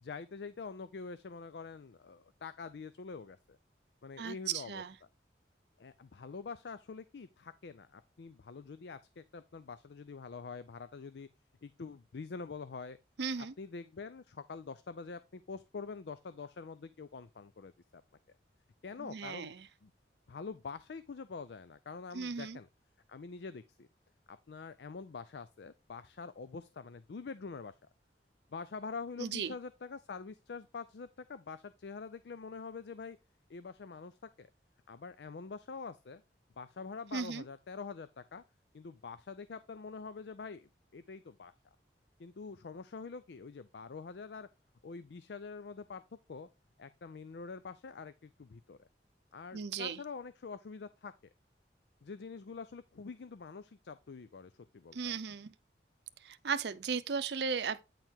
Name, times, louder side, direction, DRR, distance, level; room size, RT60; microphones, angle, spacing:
voice 1, 0.0-3.6 4.0-5.1 5.8-11.3 11.6-13.0 13.4-18.0 18.8-19.5 19.8-19.9 20.3-22.7 23.1-23.9 24.3-27.8 28.5-33.2 33.5-34.5 34.9-36.2 36.6-38.4 38.7-41.5 42.2-44.5 44.8-46.5 46.8-48.9 49.3-51.1 52.0-55.2, left 4 dB, 70° left, 0.5 m, -45 dB
voice 2, 4.2-4.9 13.2-13.5 19.0-19.7 22.1-22.6 29.2-29.5 37.1-37.4 49.5-50.0 54.9-55.5 56.2-57.8, right 6 dB, 75° right, 0.6 m, -36 dB
9.1 x 4.6 x 3.6 m
head